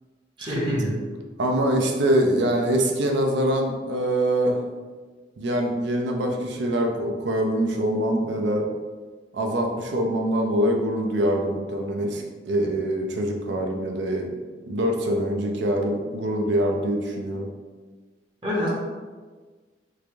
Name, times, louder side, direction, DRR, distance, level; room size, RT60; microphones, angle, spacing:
voice 1, 0.4-1.0 18.4-18.7, equal, 25° right, -5 dB, 0.7 m, -25 dB
voice 2, 1.4-4.6 5.4-8.7 9.3-14.4 14.7-17.5, right 1 dB, 75° right, 2 dB, 0.5 m, -24 dB
3.2 x 2.5 x 3.4 m, 1.4 s
head